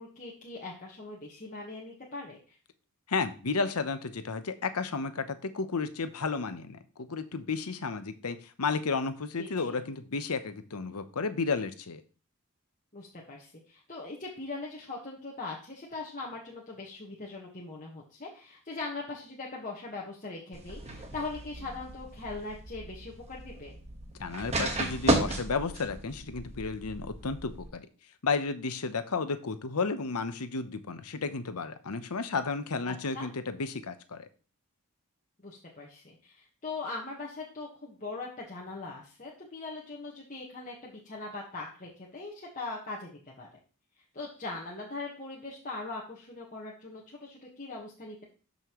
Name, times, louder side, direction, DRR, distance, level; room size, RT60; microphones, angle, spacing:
voice 1, 0.0-2.6 9.4-9.8 12.9-23.8 32.8-33.3 35.4-43.1 43.4-43.5 44.1-48.2, left 3 dB, 35° left, -3 dB, 1.4 m, -41 dB
voice 2, 3.1-12.0 24.2-27.9 28.2-34.3, left 4 dB, 90° left, 11 dB, 0.9 m, -32 dB
sound 1, 20.5-27.7, right 1 dB, 30° right, 1.4 m, -34 dB
12.5 x 5.4 x 3.1 m, 0.38 s
head